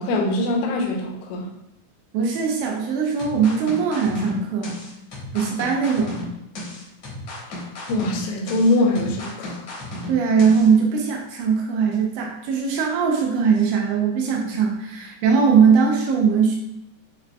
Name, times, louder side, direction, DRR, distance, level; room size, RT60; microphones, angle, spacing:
voice 1, 0.0-1.4 7.9-9.6, left 2 dB, 85° left, 0 dB, 3.0 m, -22 dB
voice 2, 2.1-4.8 5.3-6.2 10.1-16.6, right 6 dB, 85° right, 0 dB, 2.8 m, -20 dB
sound 1, 3.2-10.7, left 2 dB, 70° left, 1.4 m, -34 dB
7.2 x 2.5 x 2.3 m, 0.83 s
omnidirectional pair, 5.0 m